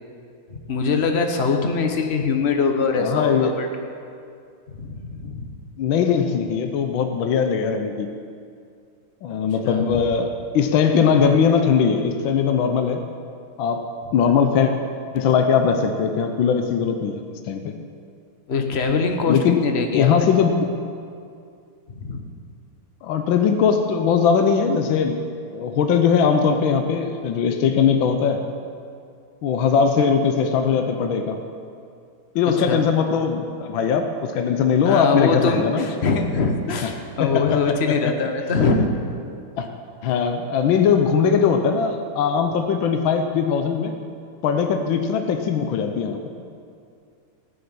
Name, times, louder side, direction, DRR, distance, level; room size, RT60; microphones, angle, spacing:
voice 1, 0.5-3.7 4.7-5.5 9.6-10.0 18.5-20.1 21.9-22.2 32.6-32.8 34.8-38.9, left 4 dB, 40° left, 4 dB, 1.1 m, -23 dB
voice 2, 3.0-3.6 5.8-8.1 9.2-13.0 13.6-14.7 15.1-17.2 17.5-17.7 19.3-19.6 19.9-20.6 23.0-25.2 25.5-28.4 29.4-31.4 32.3-35.9 37.2-38.1 39.6-39.7 40.0-43.9 44.4-46.3, left 6 dB, 70° left, 6 dB, 1.5 m, -20 dB
16.5 x 6.9 x 8.8 m, 2.4 s
omnidirectional pair, 2.3 m